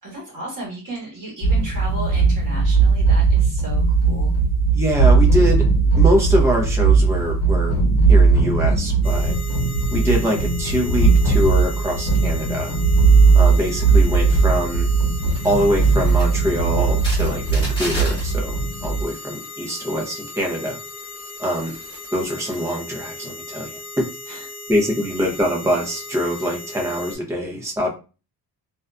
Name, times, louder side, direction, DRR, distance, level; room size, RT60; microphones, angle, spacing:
voice 1, 0.0-4.3 24.3-24.5, right 1 dB, 50° right, -3 dB, 1.3 m, -34 dB
sound 1, 1.4-19.0, right 4 dB, 60° left, 1.0 m, -18 dB
voice 2, 4.7-5.6 6.0-7.8 8.1-9.3 9.9-12.8 13.3-14.9 15.4-20.8 21.4-21.7 22.1-24.1 24.7-28.0, equal, 5° right, -1 dB, 0.6 m, -24 dB
sound 2, 9.0-27.2, left 2 dB, 10° left, 1.3 m, -36 dB
2.5 x 2.4 x 2.2 m, 0.32 s
wide cardioid pair, 130°, 42 cm